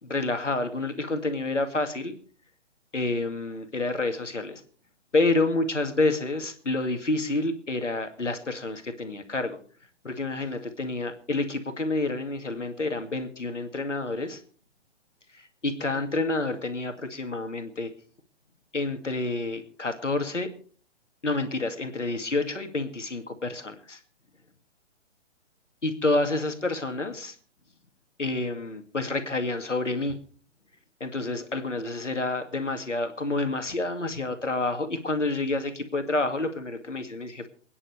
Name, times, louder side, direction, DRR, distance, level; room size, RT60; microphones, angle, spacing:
voice 1, 0.0-2.1 2.9-4.6 5.1-9.6 10.0-14.4 15.6-17.9 18.7-20.5 21.2-24.0 25.8-27.4 28.2-30.2 31.0-37.5, left 2 dB, 80° left, 7 dB, 2.2 m, -28 dB
28.0 x 9.8 x 3.4 m, 0.43 s
figure-of-eight pair, 130°, 36 cm